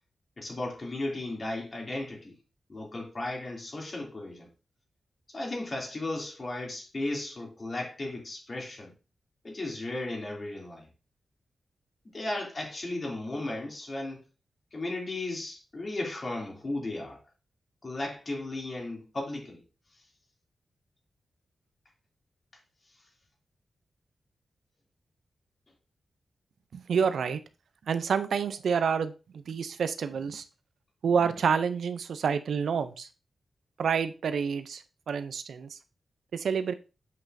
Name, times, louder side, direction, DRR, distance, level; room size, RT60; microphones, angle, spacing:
voice 1, 0.4-2.4 2.7-4.5 5.3-8.9 9.4-10.9 12.1-14.2 14.7-17.2 17.8-19.6, left 2 dB, 45° left, 2.8 m, -35 dB
voice 2, 26.7-27.4 27.9-29.1 29.5-30.4 31.0-33.1 33.8-35.8 36.3-36.7, right 6 dB, 85° right, 0.6 m, -28 dB
7.9 x 5.8 x 2.7 m
cardioid pair, 70°, 0 cm